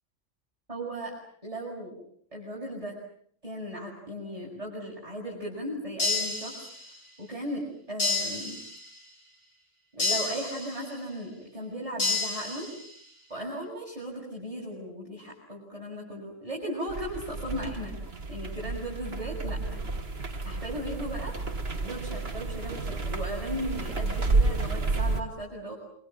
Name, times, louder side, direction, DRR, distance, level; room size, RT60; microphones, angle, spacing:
voice 1, 0.7-1.1 1.4-1.9 2.3-3.0 3.4-6.6 7.2-8.6 9.9-12.7 13.3-18.0 18.3-19.8 20.4-21.3 21.8-25.7, right 1 dB, 25° right, -5 dB, 8.0 m, -36 dB
sound 1, 6.0-7.1 8.0-9.0 10.0-11.0 12.0-13.0, left 3 dB, 65° left, 8.4 m, -30 dB
sound 2, 16.9-25.2, right 3 dB, 50° right, 2.2 m, -31 dB
27.5 x 27.0 x 7.6 m, 0.64 s
omnidirectional pair, 1.3 m